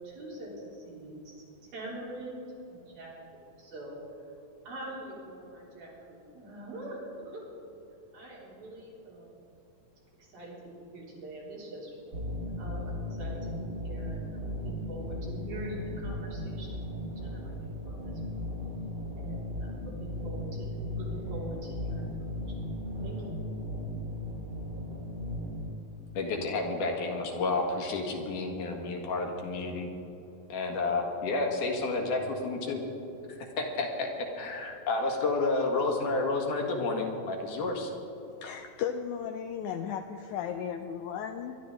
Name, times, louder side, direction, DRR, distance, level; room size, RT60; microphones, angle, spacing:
voice 1, 0.0-1.4 1.7-3.9 4.7-7.4 8.1-9.3 10.2-12.1 12.6-18.4 19.2-23.4, right 1 dB, 85° right, -7 dB, 5.5 m, -44 dB
sound 1, 12.1-25.7, left 1 dB, 35° right, 2.1 m, -36 dB
voice 2, 26.1-29.9 30.5-32.8 33.6-34.1 34.3-37.9, left 3 dB, 65° left, 1 dB, 3.2 m, -30 dB
voice 3, 38.4-41.6, left 8 dB, 85° left, 6 dB, 1.7 m, -35 dB
24.0 x 11.5 x 3.9 m, 2.9 s
omnidirectional pair, 4.1 m